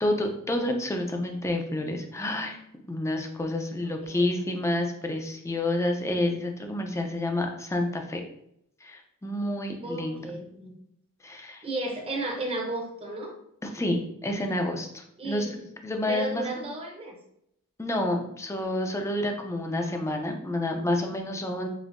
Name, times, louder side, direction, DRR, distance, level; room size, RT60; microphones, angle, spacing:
voice 1, 0.0-2.6 2.9-8.2 8.8-10.3 11.2-11.6 13.7-15.6 15.8-16.4 17.8-21.7, left 1 dB, 15° left, 3 dB, 0.5 m, -29 dB
voice 2, 3.8-4.5 9.8-10.7 11.6-13.4 15.2-15.7 16.1-17.2, right 2 dB, 25° right, 1 dB, 0.8 m, -34 dB
5.1 x 2.7 x 2.5 m, 0.75 s
head